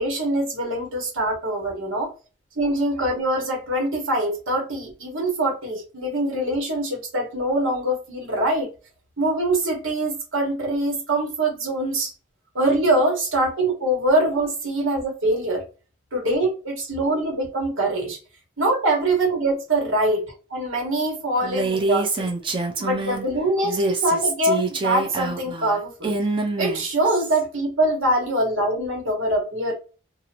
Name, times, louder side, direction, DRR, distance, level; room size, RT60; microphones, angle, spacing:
voice 1, 0.0-2.1 2.5-8.7 9.2-12.1 12.5-15.6 16.1-18.2 18.6-22.3 22.8-26.1 26.6-29.7, right 1 dB, 85° right, 1.4 m, -23 dB
Female speech woman speaking, 21.4-23.3 23.6-27.4, right 3 dB, 25° right, 0.5 m, -26 dB
2.8 x 2.5 x 2.9 m
head